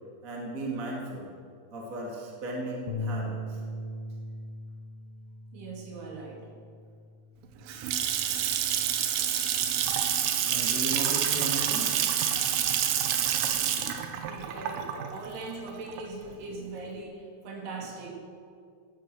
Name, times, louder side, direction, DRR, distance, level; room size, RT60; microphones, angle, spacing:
voice 1, 0.2-1.3 1.7-3.6 10.4-11.9 16.6-16.7 17.8-17.9, right 1 dB, 25° right, -3 dB, 1.8 m, -36 dB
Bass guitar, 2.9-7.3 7.7-9.1, left 1 dB, 85° left, 2.0 m, -40 dB
voice 2, 5.5-6.5 13.6-18.2, right 3 dB, 65° right, -1 dB, 3.7 m, -41 dB
Water tap faucet / Sink (filling or washing) / Splash splatter, 7.4-16.3, right 10 dB, 80° right, 3.5 m, -28 dB
17.0 x 10.5 x 6.3 m, 2.2 s
omnidirectional pair, 5.5 m